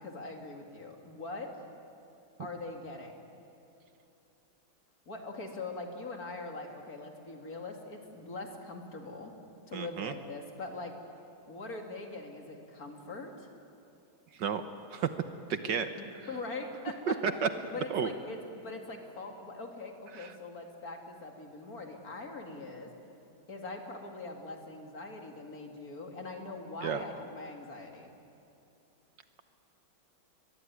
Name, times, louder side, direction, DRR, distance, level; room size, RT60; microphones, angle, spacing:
voice 1, 0.0-1.5 2.4-3.2 5.1-9.3 9.7-11.0 11.5-13.5 16.0-17.2 17.7-22.9 23.5-28.1, left 3 dB, 45° left, 3 dB, 2.7 m, -42 dB
voice 2, 9.7-10.1 14.4-15.1 15.5-15.9 17.1-17.5 17.9-18.1 20.1-20.3 26.8-27.0, right 7 dB, 65° right, 9 dB, 1.5 m, -32 dB
22.5 x 21.5 x 9.4 m, 2.8 s
omnidirectional pair, 2.2 m